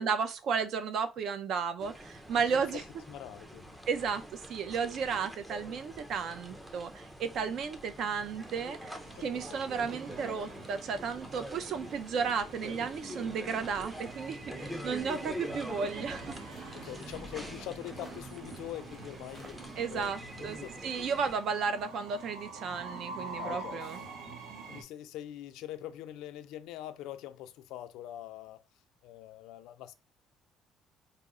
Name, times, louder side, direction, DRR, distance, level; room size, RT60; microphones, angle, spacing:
voice 1, 0.0-2.8 3.9-8.9 9.2-16.2 19.8-24.0, right 6 dB, 60° right, 0.5 m, -33 dB
sound 1, 1.8-21.4, equal, 10° right, 0.5 m, -45 dB
voice 2, 2.3-3.8 9.1-9.6 14.8-15.2 16.7-20.8 23.4-24.1 24.7-28.6 29.0-29.9, left 13 dB, 90° left, 0.4 m, -44 dB
Train, 8.0-24.8, right 3 dB, 85° right, 0.8 m, -47 dB
sound 2, 14.6-20.6, right 1 dB, 25° right, 1.0 m, -55 dB
4.2 x 2.0 x 3.6 m
cardioid pair, 135°, 0 cm